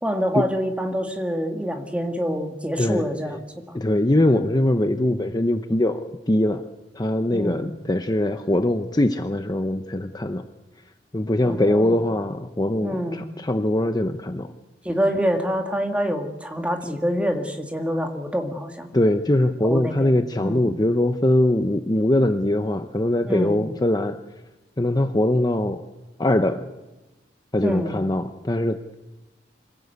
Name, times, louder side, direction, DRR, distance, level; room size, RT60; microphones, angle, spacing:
voice 1, 0.0-3.4 3.7-3.8 7.3-7.7 11.4-12.0 12.8-13.2 14.8-18.9 19.6-20.7 23.2-23.6 27.6-28.0, equal, 5° right, 4 dB, 2.1 m, -26 dB
voice 2, 2.8-3.4 3.7-6.6 6.9-10.4 11.1-14.5 18.9-24.2 24.8-25.8 26.2-26.7 27.5-28.9, left 1 dB, 20° left, 8 dB, 0.8 m, -22 dB
25.5 x 16.5 x 8.2 m, 1.0 s
head